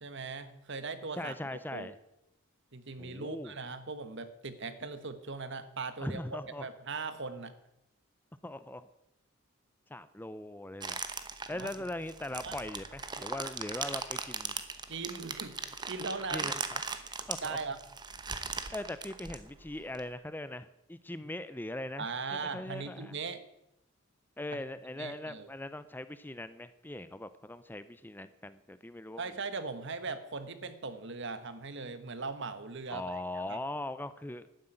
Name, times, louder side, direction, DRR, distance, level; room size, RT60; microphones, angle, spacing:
voice 1, 0.0-1.3 1.7-1.9 2.7-6.2 6.6-7.5 11.5-11.7 12.4-12.6 14.9-16.5 17.0-17.1 17.4-17.8 22.0-23.4 24.5-24.6 25.0-25.5 29.2-33.0 33.5-33.6, right 4 dB, 60° right, 11 dB, 1.4 m, -39 dB
voice 2, 1.2-2.0 3.0-3.5 6.0-6.7 8.4-8.9 9.9-11.0 11.5-14.5 16.3-16.8 17.3-17.6 18.7-23.2 24.4-29.3 32.9-34.5, left 1 dB, 10° left, 13 dB, 0.5 m, -40 dB
sound 1, 10.8-20.0, right 5 dB, 20° right, 1.0 m, -39 dB
12.0 x 9.7 x 9.0 m, 0.87 s
head